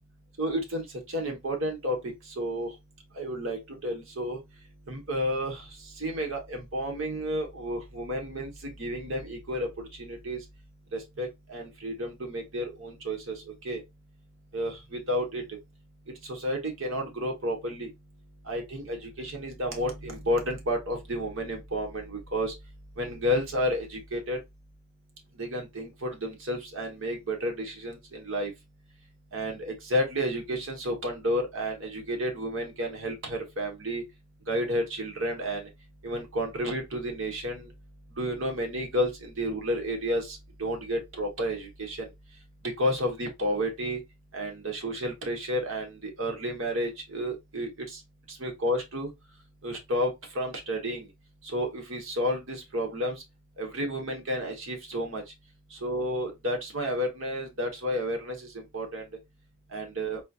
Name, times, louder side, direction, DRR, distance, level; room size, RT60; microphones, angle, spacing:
voice 1, 0.4-2.0 2.4-2.7 3.2-4.4 4.9-5.6 6.0-8.5 8.8-9.7 10.0-10.4 10.9-13.4 13.6-13.8 14.5-15.4 16.2-17.9 18.5-22.5 23.0-24.4 25.4-28.5 29.3-34.0 34.5-35.6 36.0-37.7 38.2-42.1 42.8-44.0 44.3-48.0 48.3-49.1 49.6-51.0 51.5-53.2 53.6-55.2 55.7-58.5 58.7-59.0 59.7-60.2, equal, 65° right, 1.1 m, -31 dB
3.9 x 2.8 x 2.4 m
head